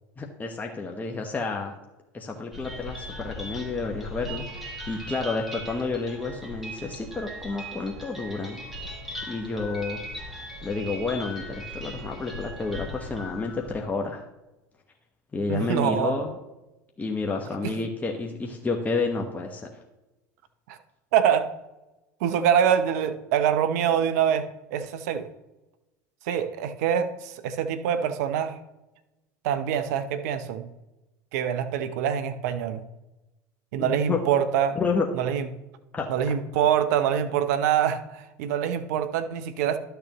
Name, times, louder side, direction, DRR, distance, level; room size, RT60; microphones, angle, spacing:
voice 1, 0.2-1.7 2.1-8.6 9.3-10.0 10.6-14.2 15.3-16.3 17.0-19.7 33.8-34.2 34.7-35.1 35.9-36.1, left 3 dB, 20° left, 1 dB, 1.1 m, -30 dB
sound 1, 2.5-13.8, left 1 dB, ahead, 2.7 m, -39 dB
voice 2, 15.5-16.2 17.6-17.7 20.7-20.8 21.1-21.5 22.2-25.3 26.3-28.6 29.4-30.7 31.3-32.8 33.7-34.8 35.2-35.5 36.1-39.8, right 8 dB, 70° right, 10 dB, 0.8 m, -25 dB
12.0 x 6.9 x 3.0 m, 1.0 s
hypercardioid pair, 80°, 9 cm